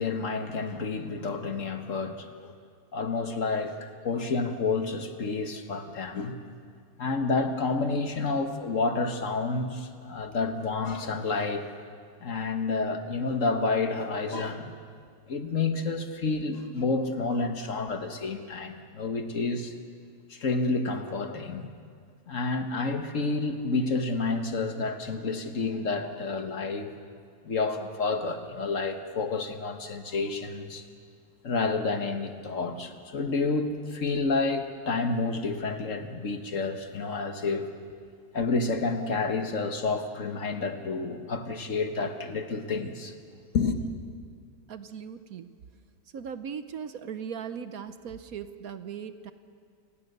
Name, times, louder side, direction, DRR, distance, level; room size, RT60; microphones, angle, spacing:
voice 1, 0.0-2.5 2.9-6.4 7.0-11.6 12.2-14.7 15.3-19.7 20.3-21.7 22.3-26.9 27.4-30.8 31.4-37.7 38.3-43.1 43.5-43.8, left 3 dB, 50° left, 7 dB, 1.6 m, -29 dB
voice 2, 44.7-45.5 46.1-49.3, right 7 dB, 65° right, 11 dB, 1.2 m, -38 dB
28.5 x 19.0 x 6.7 m, 2.1 s
omnidirectional pair, 1.8 m